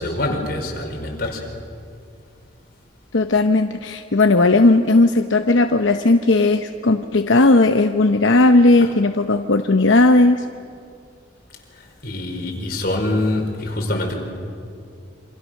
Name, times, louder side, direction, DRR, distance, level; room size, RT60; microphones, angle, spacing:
voice 1, 0.0-1.5 8.8-8.9 11.8-14.2, left 1 dB, 55° left, 1 dB, 4.8 m, -25 dB
voice 2, 3.1-10.4, left 2 dB, 85° left, 6 dB, 0.9 m, -16 dB
27.5 x 26.5 x 6.5 m, 2.4 s
head